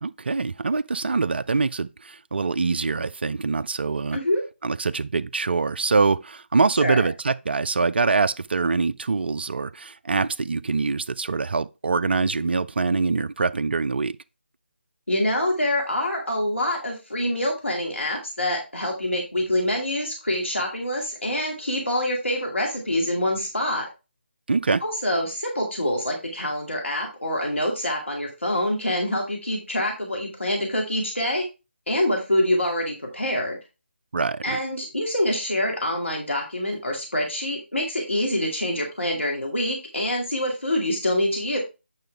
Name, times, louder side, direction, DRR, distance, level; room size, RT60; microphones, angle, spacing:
voice 1, 0.0-4.2 4.6-14.2 24.5-24.8 34.1-34.6, right 4 dB, 60° right, 0.4 m, -24 dB
voice 2, 15.1-23.9 24.8-31.5 31.9-33.6 34.4-41.6, left 1 dB, 80° left, 2.2 m, -25 dB
9.0 x 5.7 x 3.4 m
figure-of-eight pair, 155°, 6 cm